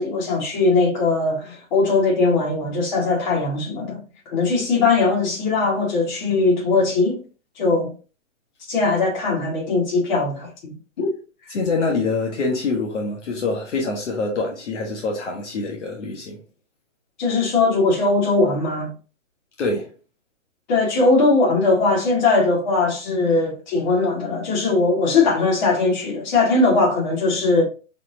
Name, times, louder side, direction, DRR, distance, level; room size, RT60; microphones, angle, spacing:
voice 1, 0.0-4.0 4.3-7.2 7.6-7.9 8.7-10.7 11.0-11.1 17.2-18.9 20.7-27.6, left 3 dB, 35° left, 2.0 m, -20 dB
voice 2, 11.5-16.4 19.6-19.9, left 3 dB, 60° left, 1.4 m, -25 dB
4.5 x 4.3 x 2.7 m
hypercardioid pair, 160°, 39 cm